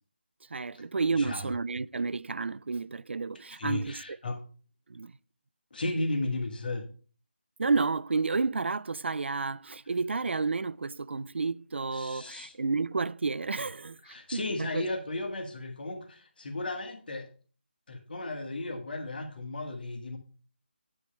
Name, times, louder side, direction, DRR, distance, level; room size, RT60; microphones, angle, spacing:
voice 1, 0.5-4.0 4.9-5.1 7.6-14.9, right 4 dB, 75° right, 0.4 m, -31 dB
voice 2, 1.2-1.5 3.5-4.4 5.7-6.8 11.9-12.5 14.0-17.3 17.9-20.2, left 2 dB, 50° left, 1.7 m, -34 dB
9.5 x 3.3 x 6.3 m
figure-of-eight pair, 165°, 6 cm